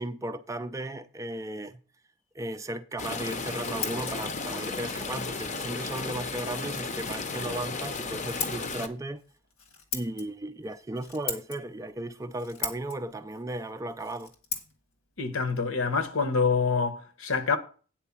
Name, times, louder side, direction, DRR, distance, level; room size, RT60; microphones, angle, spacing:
voice 1, 0.0-1.8 2.4-9.2 9.9-14.3, right 1 dB, 15° right, 0.4 m, -35 dB
sound 1, 3.0-8.9, left 4 dB, 35° left, 0.7 m, -34 dB
Scissors, 3.2-16.8, left 6 dB, 90° left, 1.6 m, -42 dB
voice 2, 15.2-17.6, left 5 dB, 75° left, 1.0 m, -26 dB
9.0 x 4.5 x 7.1 m
head